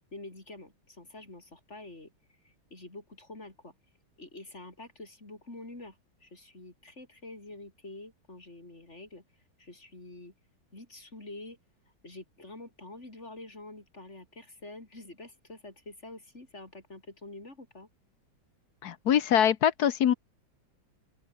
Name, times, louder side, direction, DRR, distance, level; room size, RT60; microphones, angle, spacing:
voice 1, 0.1-2.1 2.4-3.7 4.2-9.2 9.6-10.3 10.7-11.6 12.0-17.9, left 2 dB, 35° left, 5.6 m, -47 dB
voice 2, 18.8-20.1, left 9 dB, 60° left, 1.3 m, -23 dB
omnidirectional pair, 2.1 m